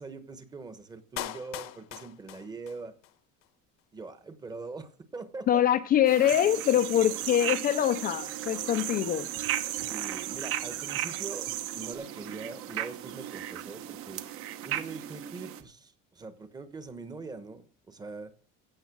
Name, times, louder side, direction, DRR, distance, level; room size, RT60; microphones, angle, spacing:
voice 1, 0.0-3.0 3.9-5.6 9.7-11.5 11.7-14.2 14.6-18.3, right 4 dB, 15° right, 1.1 m, -42 dB
Clapping, 1.2-3.2 3.4-3.5, left 15 dB, 65° left, 1.1 m, -40 dB
voice 2, 5.5-9.3, left 11 dB, 30° left, 0.5 m, -24 dB
sound 1, 6.0-15.6, right 11 dB, 45° right, 1.1 m, -37 dB
sound 2, 6.3-11.9, right 13 dB, 85° right, 1.6 m, -37 dB
15.5 x 7.3 x 6.1 m
cardioid pair, 175°, 29 cm